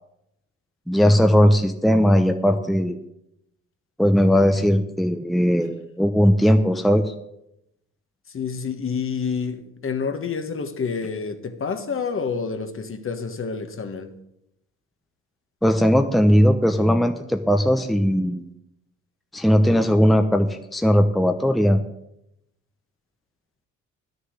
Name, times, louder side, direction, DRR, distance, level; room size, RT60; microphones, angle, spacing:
voice 1, 0.9-3.0 4.0-7.1 15.6-18.5 19.3-21.8, equal, ahead, 0.9 m, -18 dB
voice 2, 8.3-14.2, left 5 dB, 45° left, 1.5 m, -28 dB
11.0 x 6.8 x 8.2 m
cardioid pair, 90°, 30 cm